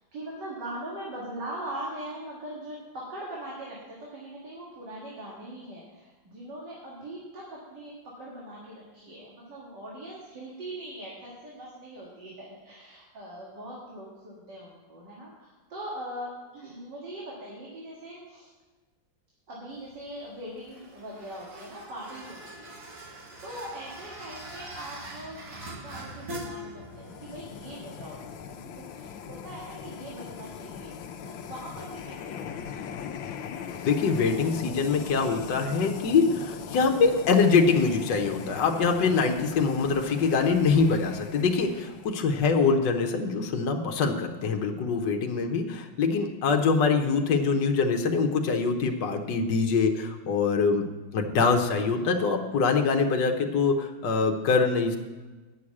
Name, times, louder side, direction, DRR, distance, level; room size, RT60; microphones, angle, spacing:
voice 1, 0.1-18.5 19.5-22.7 23.1-28.2 28.8-32.6 32.9-33.0 39.0-39.2 41.7-42.1 45.5-45.8 50.6-51.1, right 1 dB, 65° right, -5 dB, 2.6 m, -41 dB
sound 1, 19.7-33.1, right 1 dB, 45° right, 2.0 m, -45 dB
sound 2, 26.9-42.3, left 7 dB, 85° left, 1.5 m, -40 dB
voice 2, 33.8-50.9 51.1-55.0, left 4 dB, 65° left, 3 dB, 1.5 m, -24 dB
8.9 x 6.3 x 8.5 m, 1.3 s
omnidirectional pair, 2.1 m